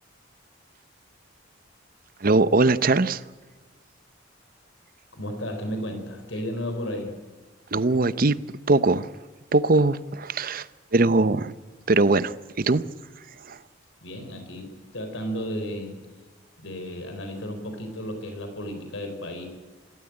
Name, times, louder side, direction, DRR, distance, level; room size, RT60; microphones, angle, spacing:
voice 1, 2.2-3.2 7.7-8.4 8.7-9.1 9.5-10.7 10.9-11.5 11.9-12.8 13.4-13.6, right 3 dB, 45° right, 16 dB, 0.7 m, -21 dB
voice 2, 5.1-7.2 14.0-16.0 16.6-19.4, equal, 75° left, 5 dB, 4.3 m, -33 dB
26.5 x 13.0 x 8.9 m, 1.3 s
head